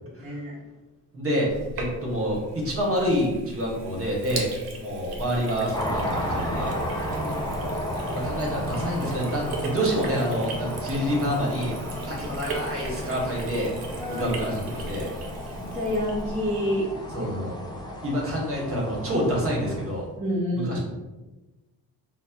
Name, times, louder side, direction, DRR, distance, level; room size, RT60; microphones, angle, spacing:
voice 1, 0.0-0.5 7.0-7.4 14.0-14.3 15.6-17.3 20.2-20.7, equal, 20° right, -7 dB, 0.7 m, -29 dB
voice 2, 1.1-1.5 1.7-4.5 4.7-6.7 8.0-11.7 12.0-13.7 14.1-15.1 17.1-17.6 18.0-20.0 20.5-20.8, equal, 35° right, -2 dB, 1.1 m, -27 dB
Sink (filling or washing), 1.5-16.6, right 2 dB, 65° right, 0.7 m, -38 dB
sound 1, 5.7-20.0, left 1 dB, 10° left, 0.5 m, -33 dB
4.1 x 2.0 x 2.3 m, 1.1 s
cardioid pair, 85°, 39 cm